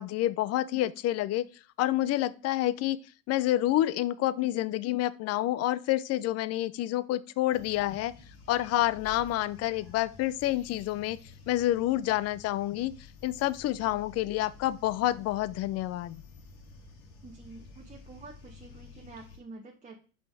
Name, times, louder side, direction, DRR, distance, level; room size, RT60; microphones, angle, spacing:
voice 1, 0.0-1.5 1.8-3.0 3.3-8.1 8.5-11.2 11.5-12.9 13.2-16.2, left 14 dB, 35° left, 0.5 m, -28 dB
sound 1, 7.5-19.4, left 4 dB, 70° left, 2.5 m, -51 dB
voice 2, 17.2-20.0, right 3 dB, 15° right, 1.0 m, -48 dB
5.7 x 5.2 x 4.6 m
hypercardioid pair, 100°, 44 cm